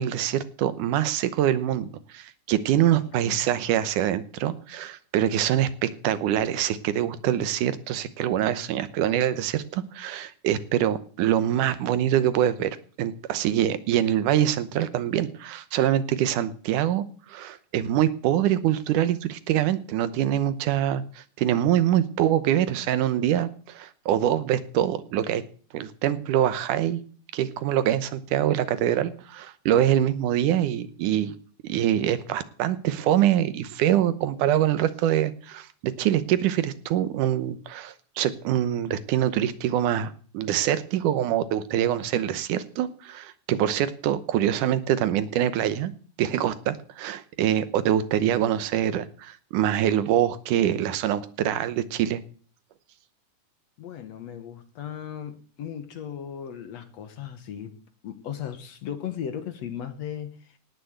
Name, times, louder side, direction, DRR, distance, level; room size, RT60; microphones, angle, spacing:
voice 1, 0.0-12.7 13.0-25.4 25.7-27.0 27.3-31.4 31.6-45.9 46.2-52.2, right 11 dB, 85° right, 2.5 m, -24 dB
voice 2, 3.0-3.5 53.8-57.8 58.0-60.6, left 9 dB, 60° left, 2.3 m, -37 dB
18.0 x 7.0 x 7.9 m
omnidirectional pair, 3.6 m